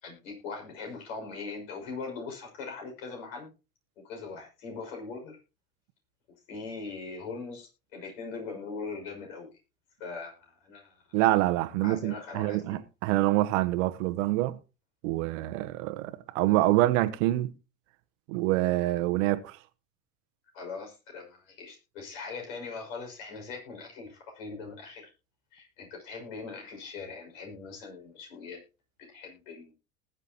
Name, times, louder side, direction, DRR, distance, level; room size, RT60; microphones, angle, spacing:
voice 1, 0.0-3.5 4.0-5.4 6.5-9.5 10.0-11.0 11.8-12.8 20.5-25.1 25.5-28.6 29.0-29.7, left 4 dB, 65° left, 6.2 m, -41 dB
voice 2, 11.1-14.6 15.0-17.5 18.3-19.6, right 16 dB, 60° right, 1.3 m, -26 dB
20.0 x 8.2 x 2.9 m
hypercardioid pair, 80°, 43 cm